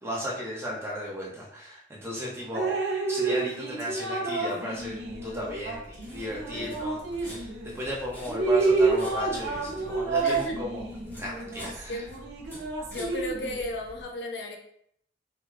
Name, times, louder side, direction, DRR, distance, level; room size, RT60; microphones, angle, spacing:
voice 1, 0.0-2.7 3.1-10.8 11.2-12.0, equal, 15° right, -4 dB, 0.7 m, -35 dB
Drip, 2.5-7.8 8.2-13.6, right 3 dB, 85° right, 0.7 m, -29 dB
sound 1, 4.7-14.0, equal, 10° left, 0.9 m, -46 dB
voice 2, 10.2-10.6 11.9-12.1 12.9-14.6, left 1 dB, 70° left, 1 dB, 0.6 m, -35 dB
4.5 x 2.0 x 2.4 m, 0.68 s
head